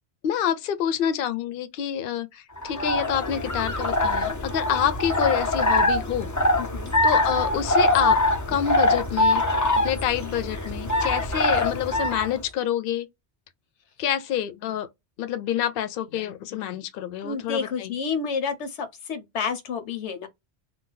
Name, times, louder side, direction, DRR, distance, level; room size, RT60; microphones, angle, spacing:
voice 1, 0.2-6.3 7.0-8.2 8.5-9.4 9.8-13.1 14.0-14.9 15.2-17.9, left 10 dB, 65° left, 0.7 m, -27 dB
sound 1, 2.6-12.3, left 1 dB, 20° left, 0.5 m, -23 dB
voice 2, 6.6-7.0 17.2-20.3, left 5 dB, 85° left, 1.1 m, -30 dB
2.6 x 2.3 x 3.7 m
omnidirectional pair, 1.2 m